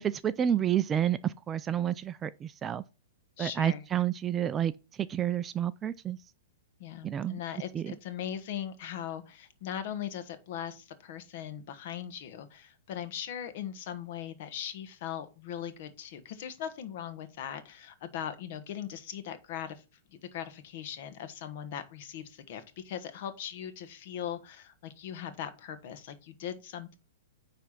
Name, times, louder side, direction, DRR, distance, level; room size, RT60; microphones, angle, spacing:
voice 1, 0.0-2.8 3.4-4.7 5.0-6.2 7.0-7.4 7.7-7.9, right 10 dB, 20° right, 0.3 m, -29 dB
voice 2, 3.4-3.8 6.8-19.8 20.3-27.0, left 9 dB, 50° left, 1.4 m, -39 dB
9.6 x 3.4 x 5.8 m
hypercardioid pair, 145°, 0 cm